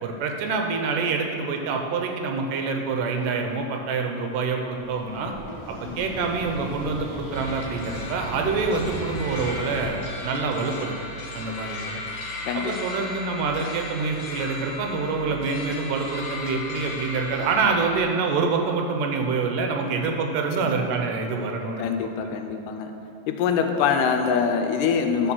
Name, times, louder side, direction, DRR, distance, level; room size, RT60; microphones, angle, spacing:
voice 1, 0.0-5.3 5.7-10.9 11.3-12.0 12.5-21.8 22.5-22.6, right 4 dB, 80° right, 3 dB, 2.3 m, -26 dB
sound 1, 4.8-9.9, equal, 15° left, 0.9 m, -37 dB
sound 2, 7.3-18.0, left 2 dB, 70° left, 1.8 m, -36 dB
voice 2, 21.8-22.9 23.3-25.3, left 6 dB, 85° left, 6 dB, 2.1 m, -24 dB
11.5 x 4.0 x 6.1 m, 2.7 s
omnidirectional pair, 3.9 m